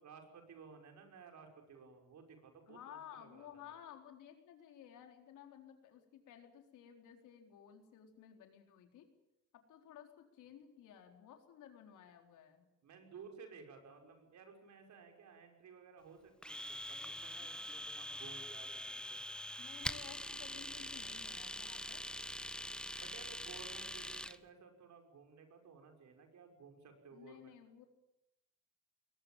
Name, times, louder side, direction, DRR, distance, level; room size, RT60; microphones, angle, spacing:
voice 1, 0.0-3.7 12.8-19.3 22.9-27.5, right 5 dB, 70° right, 4 dB, 6.0 m, -56 dB
voice 2, 2.7-9.1 9.5-12.7 17.4-17.5 17.8-17.9 19.6-22.0 27.1-27.9, left 9 dB, 85° left, 4 dB, 4.2 m, -56 dB
Domestic sounds home sounds, 16.4-24.4, left 1 dB, 5° left, 1.0 m, -44 dB
21.5 x 20.0 x 8.9 m, 0.85 s
cardioid pair, 90°, 30 cm